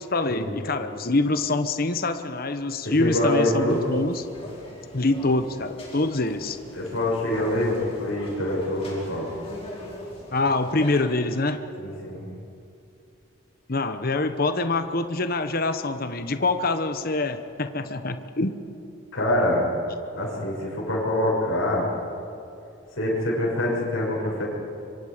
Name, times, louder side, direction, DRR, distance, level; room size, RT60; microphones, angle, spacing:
voice 1, 0.0-4.2 4.9-6.6 10.3-11.6 13.7-18.6, left 2 dB, 45° left, 9 dB, 1.0 m, -25 dB
voice 2, 2.8-3.8 6.7-9.3 11.8-12.2 19.1-19.6 20.1-21.9 23.0-24.4, left 1 dB, 75° left, -5 dB, 6.8 m, -25 dB
sound 1, 3.1-11.0, left 1 dB, 30° left, 4.8 m, -42 dB
27.0 x 25.0 x 5.1 m, 2.6 s
head